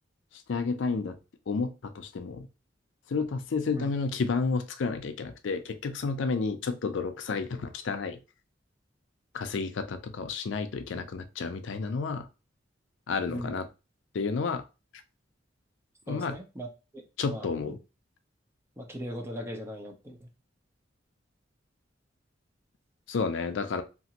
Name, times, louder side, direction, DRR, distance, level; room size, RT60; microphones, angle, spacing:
voice 1, 0.5-1.2 1.5-2.5 3.1-8.2 9.3-12.3 13.1-13.7 14.1-14.6 16.1-16.4 17.2-17.8 23.1-23.8, left 4 dB, 75° left, 0.4 m, -31 dB
voice 2, 13.3-13.6 16.1-16.7 17.3-17.8 18.8-20.3, equal, 15° right, 0.6 m, -38 dB
3.0 x 2.5 x 2.8 m
head